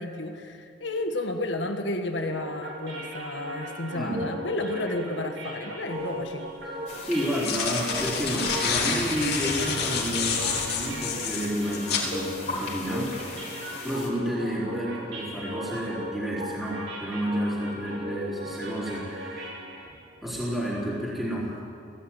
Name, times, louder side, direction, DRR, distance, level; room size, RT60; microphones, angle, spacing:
voice 1, 0.0-6.5, left 2 dB, 80° left, 5 dB, 1.7 m, -32 dB
sound 1, 2.1-20.0, right 1 dB, 75° right, 7.1 m, -37 dB
voice 2, 4.0-4.3 7.0-13.2 13.8-19.5 19.9-20.0 20.2-21.5, equal, ahead, -8 dB, 3.8 m, -30 dB
sound 2, 6.0-6.1 7.1-12.1, left 5 dB, 60° left, 3.5 m, -28 dB
sound 3, 6.9-14.1, left 4 dB, 40° left, 4.5 m, -40 dB
17.5 x 16.5 x 9.1 m, 2.4 s
head